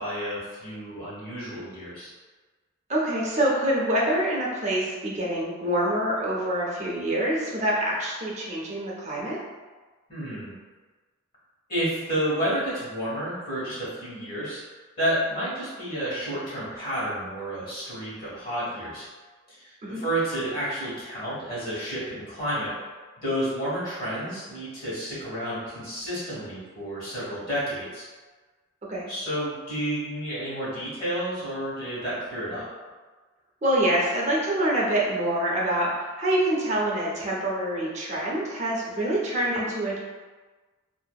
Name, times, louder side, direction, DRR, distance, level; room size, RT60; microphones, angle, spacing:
voice 1, 0.0-2.1 10.1-10.5 11.7-14.6 15.0-19.0 19.5-22.9 23.2-28.0 29.1-32.7, right 1 dB, 45° left, -8 dB, 1.3 m, -30 dB
voice 2, 2.9-9.4 19.8-20.0 28.9-29.0 33.6-40.0, right 1 dB, 35° right, -4 dB, 0.5 m, -26 dB
2.6 x 2.5 x 2.3 m, 1.3 s
head